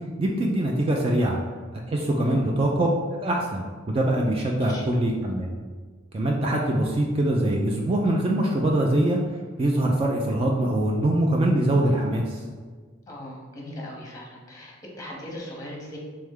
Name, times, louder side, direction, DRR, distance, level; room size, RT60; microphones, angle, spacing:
voice 1, 0.2-1.4 1.7-5.5 6.1-9.2 9.6-12.4, right 1 dB, 30° right, 0 dB, 0.3 m, -23 dB
voice 2, 13.1-16.0, left 1 dB, 15° left, -2 dB, 0.8 m, -39 dB
3.5 x 3.2 x 3.6 m, 1.5 s
head